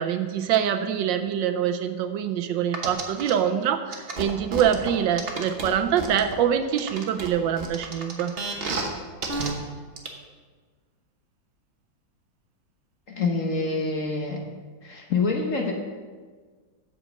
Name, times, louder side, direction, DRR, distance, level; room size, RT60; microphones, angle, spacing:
voice 1, 0.0-8.3, right 9 dB, 75° right, 8 dB, 1.2 m, -25 dB
sound 1, 2.7-3.3 3.9-6.3 6.8-8.9 9.2-9.5 10.0-10.1, right 3 dB, 35° right, 1.1 m, -30 dB
voice 2, 13.1-14.4 14.8-15.7, left 4 dB, 50° left, 2 dB, 1.1 m, -26 dB
8.1 x 7.4 x 6.3 m, 1.5 s
omnidirectional pair, 2.1 m